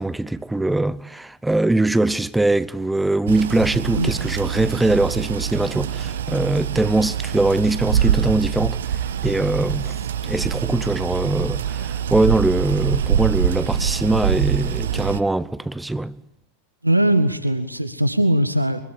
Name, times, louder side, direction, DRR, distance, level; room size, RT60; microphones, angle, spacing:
voice 1, 0.0-10.0 10.2-16.1, right 2 dB, 5° right, 1.0 m, -22 dB
sound 1, 3.3-15.2, right 9 dB, 60° right, 1.2 m, -24 dB
voice 2, 16.8-18.8, right 1 dB, 85° right, 1.7 m, -20 dB
24.0 x 22.5 x 9.2 m
figure-of-eight pair, 90°, 0 cm